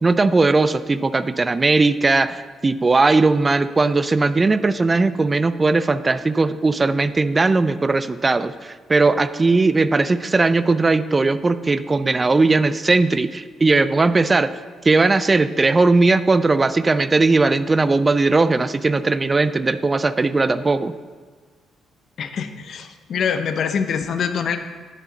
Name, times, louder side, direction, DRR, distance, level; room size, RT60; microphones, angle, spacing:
voice 1, 0.0-14.5 14.8-20.9, right 3 dB, 25° right, 14 dB, 0.3 m, -18 dB
voice 2, 22.2-24.6, left 7 dB, 60° left, 8 dB, 0.6 m, -24 dB
11.0 x 5.0 x 3.9 m, 1.5 s
cardioid pair, 90°, 0 cm